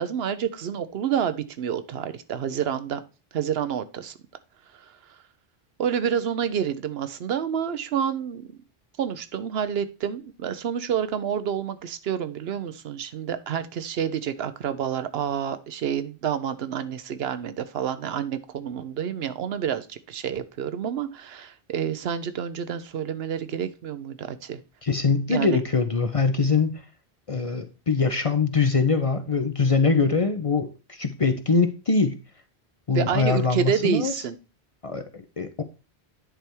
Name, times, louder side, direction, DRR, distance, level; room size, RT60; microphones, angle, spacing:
voice 1, 0.0-3.0 3.3-4.2 4.7-4.9 5.8-8.5 9.0-24.6 25.3-25.6 32.9-34.4, right 8 dB, 70° right, 12 dB, 0.9 m, -28 dB
voice 2, 24.8-26.8 27.3-32.2 32.9-34.1 34.8-35.6, left 4 dB, 40° left, 8 dB, 0.6 m, -23 dB
10.0 x 3.4 x 4.4 m, 0.31 s
omnidirectional pair, 1.1 m